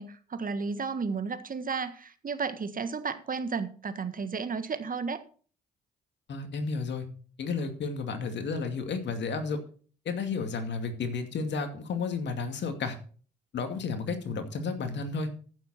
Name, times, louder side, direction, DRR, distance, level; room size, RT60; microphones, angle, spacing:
voice 1, 0.0-5.2, right 5 dB, 40° right, 11 dB, 1.6 m, -33 dB
voice 2, 6.3-7.1 7.4-9.6 10.0-13.0 13.5-15.3, left 4 dB, 60° left, 7 dB, 2.4 m, -32 dB
15.0 x 7.4 x 4.3 m, 0.41 s
hypercardioid pair, 40°, 21 cm